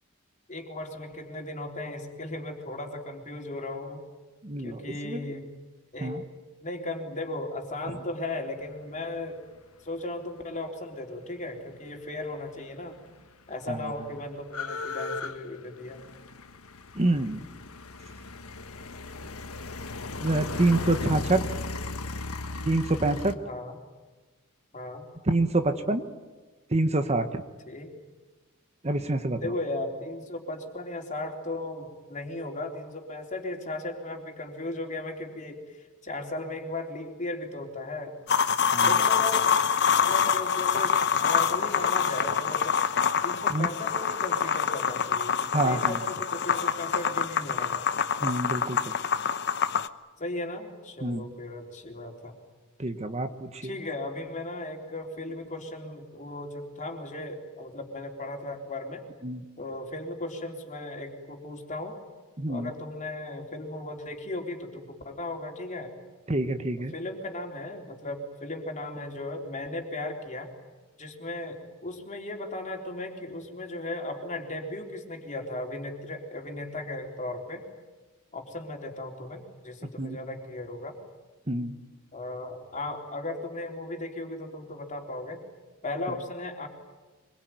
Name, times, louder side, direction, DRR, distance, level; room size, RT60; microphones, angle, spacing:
voice 1, 0.5-4.0 4.6-5.5 5.9-6.2 6.6-9.4 9.8-13.0 13.5-16.0 23.4-23.8 24.7-25.1 27.7-27.9 29.4-38.2 38.8-39.5 39.9-42.8 43.2-47.8 50.2-52.3 53.6-59.0 59.6-62.0 62.5-65.9 66.9-70.5 71.0-77.7 78.3-81.0 82.1-85.4 85.8-86.7, left 2 dB, 35° left, 2 dB, 4.0 m, -36 dB
voice 2, 4.4-5.3 6.0-6.2 13.7-13.9 16.9-17.4 20.2-21.4 22.6-23.4 25.3-26.1 26.7-27.4 28.8-29.4 38.7-39.0 43.5-43.7 45.5-46.0 48.2-48.8 51.0-51.3 52.8-53.8 59.2-59.4 62.4-62.7 66.3-66.9 80.0-80.2 81.5-81.7, right 2 dB, 30° right, 8 dB, 1.3 m, -27 dB
sound 1, 12.7-12.8 13.0-23.3, left 3 dB, 85° left, 1.5 m, -36 dB
sound 2, 38.3-49.9, left 7 dB, 55° left, 1.0 m, -26 dB
25.0 x 23.0 x 9.4 m, 1.2 s
head